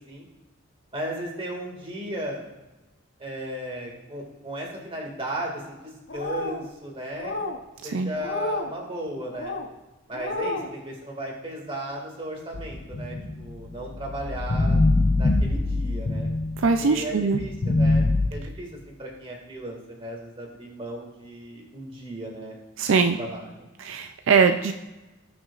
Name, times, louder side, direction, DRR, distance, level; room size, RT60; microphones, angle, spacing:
voice 1, 0.9-2.4 3.2-7.3 7.8-9.5 10.1-14.8 15.2-16.3 16.8-18.7 19.0-22.6 23.2-23.7, right 1 dB, 25° right, -1 dB, 2.0 m, -35 dB
sound 1, 6.1-6.6 7.1-7.6 8.2-8.7 9.3-9.7 10.1-10.7, left 2 dB, 55° left, 0.9 m, -31 dB
sound 2, 12.5-16.9 17.3-18.3, left 2 dB, 40° left, 0.5 m, -24 dB
voice 2, 16.6-17.4 22.8-23.2 23.8-24.7, right 5 dB, 70° right, 7 dB, 0.4 m, -21 dB
18.0 x 6.1 x 2.4 m, 1.1 s
head